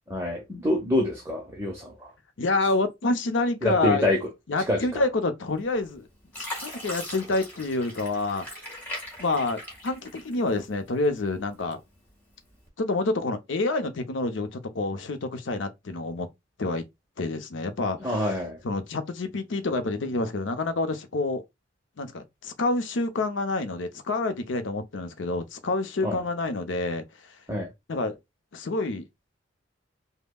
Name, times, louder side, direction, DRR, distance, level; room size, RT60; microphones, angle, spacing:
voice 1, 0.1-1.9 3.6-4.2 4.7-4.9 18.0-18.6 26.0-26.2 27.5-27.7, left 1 dB, 15° right, 0.8 m, -26 dB
voice 2, 2.4-4.1 4.5-6.1 6.4-8.4 9.2-11.8 12.8-16.3 16.6-16.8 17.2-18.3 18.6-21.4 22.0-27.0 27.9-28.2 28.5-29.0, left 2 dB, 70° left, 0.6 m, -28 dB
Fill (with liquid), 5.6-5.9 6.3-10.7 11.2-12.0 12.5-12.7, left 1 dB, 10° left, 1.7 m, -39 dB
5.2 x 2.1 x 2.3 m
head